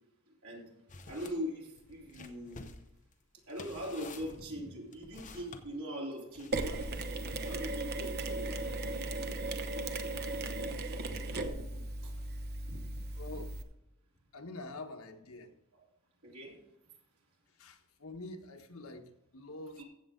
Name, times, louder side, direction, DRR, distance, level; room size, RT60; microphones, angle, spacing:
sound 1, 0.9-1.4 1.8-5.6 6.3-7.9, left 3 dB, 40° left, 0.9 m, -51 dB
voice 1, 1.1-2.7 3.5-7.0 7.2-8.8 11.3-12.1 12.6-12.9 16.2-16.5 19.8-19.9, equal, 85° right, -2 dB, 3.6 m, -42 dB
Mechanisms, 6.5-13.6, right 2 dB, 50° right, 1.0 m, -37 dB
voice 2, 13.1-13.5 14.3-15.6 17.5-19.8, left 2 dB, 85° left, 4 dB, 1.3 m, -46 dB
15.0 x 7.6 x 3.8 m, 0.86 s
head